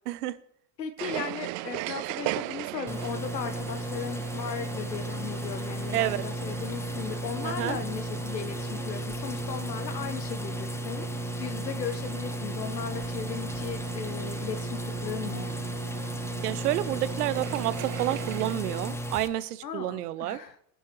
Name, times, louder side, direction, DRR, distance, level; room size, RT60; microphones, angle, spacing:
voice 1, 0.0-0.4 5.9-6.2 7.4-7.8 16.4-20.4, right 14 dB, 65° right, 15 dB, 1.1 m, -29 dB
voice 2, 0.8-15.5 19.6-20.6, left 7 dB, 80° left, 8 dB, 1.2 m, -37 dB
sound 1, 1.0-18.5, right 20 dB, 40° right, 0.5 m, -39 dB
sound 2, 2.9-19.3, equal, 5° left, 1.2 m, -34 dB
22.0 x 10.0 x 3.1 m, 0.73 s
figure-of-eight pair, 80°, 49 cm